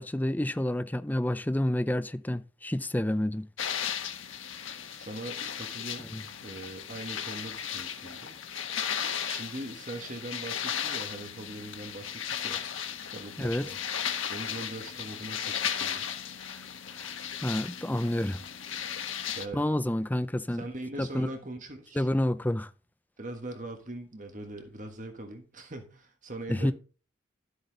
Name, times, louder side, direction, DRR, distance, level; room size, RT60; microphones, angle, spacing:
voice 1, 0.0-3.5 6.1-6.2 13.4-13.7 16.5-16.6 16.9-17.2 17.4-18.4 19.5-20.6 21.0-21.3 22.0-22.7 26.5-26.7, left 1 dB, 10° left, 0.4 m, -29 dB
sound 1, 3.6-19.5, left 8 dB, 85° left, 1.4 m, -36 dB
voice 2, 4.9-6.1 6.4-8.4 9.2-12.6 13.1-13.8 14.3-16.0 19.3-19.6 20.1-20.2 20.5-22.1 23.2-26.7, right 2 dB, 40° right, 1.5 m, -41 dB
12.5 x 8.2 x 4.0 m
head